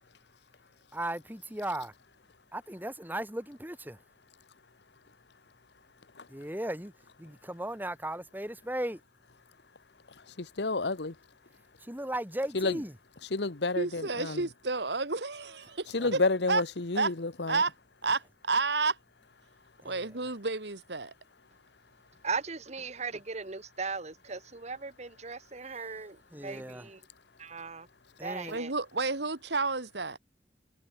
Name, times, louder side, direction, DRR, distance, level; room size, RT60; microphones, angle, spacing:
voice 1, 0.9-1.9 2.5-4.0 6.3-6.9 7.2-9.0 11.8-12.9 16.0-16.1 19.8-20.1 26.3-26.9 28.2-28.6, right 1 dB, 10° right, 3.7 m, -36 dB
voice 2, 10.3-11.2 12.5-12.8 13.3-14.4 15.9-17.6, left 3 dB, 70° left, 1.2 m, -30 dB
voice 3, 13.8-16.2 16.5-16.6 16.9-17.1 17.5-17.7 18.0-19.0 19.8-21.1 28.5-30.2, right 3 dB, 70° right, 2.4 m, -30 dB
voice 4, 22.2-27.0 27.4-27.9 28.2-28.7, right 4 dB, 40° right, 1.3 m, -38 dB
head